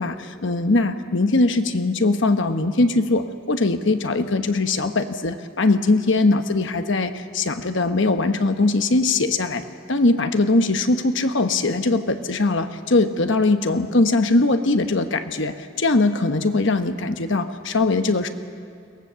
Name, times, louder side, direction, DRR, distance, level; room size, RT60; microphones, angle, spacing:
voice 1, 0.0-18.3, left 2 dB, 60° left, 8 dB, 1.1 m, -21 dB
23.0 x 18.5 x 6.9 m, 2.4 s
head